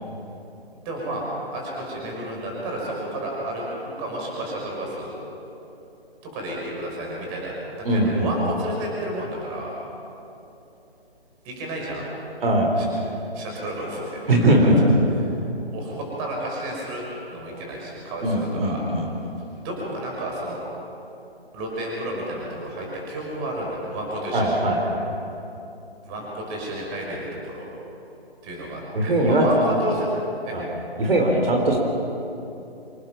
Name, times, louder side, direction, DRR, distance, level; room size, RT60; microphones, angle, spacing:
voice 1, 0.8-1.3 1.5-5.1 6.2-7.5 7.9-9.7 11.4-12.1 12.8-12.9 13.3-14.7 15.7-17.0 17.3-18.8 19.6-20.6 21.5-24.6 26.1-27.7 28.4-30.1 30.4-30.6, right 1 dB, 20° right, -2 dB, 5.6 m, -31 dB
voice 2, 7.8-8.3 12.4-12.7 14.3-14.9 18.2-19.1 24.3-25.0 28.9-29.4 30.5-30.6 31.0-31.8, right 1 dB, 65° right, 1 dB, 4.5 m, -20 dB
26.5 x 19.0 x 6.0 m, 2.9 s
figure-of-eight pair, 150°, 31 cm